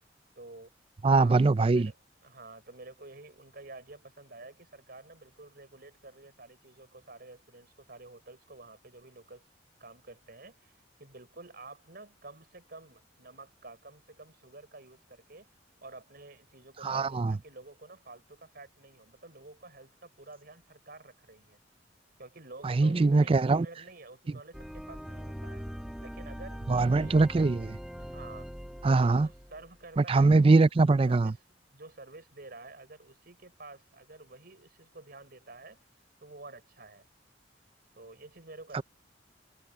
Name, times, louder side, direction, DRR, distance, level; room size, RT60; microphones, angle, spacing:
voice 1, 0.4-0.7 1.2-9.5 9.8-15.5 15.8-21.6 22.2-25.7 26.0-26.6 26.9-27.2 28.0-28.5 28.9-30.7 31.1-35.8 36.2-37.1 37.9-38.8, right 2 dB, 55° right, 5.9 m, -50 dB
voice 2, 1.0-1.9 16.8-17.3 22.6-23.7 26.7-27.8 28.8-29.3 30.1-31.3 38.7-38.8, right 3 dB, 30° right, 0.4 m, -22 dB
sound 1, 24.5-29.7, equal, ahead, 1.2 m, -42 dB
head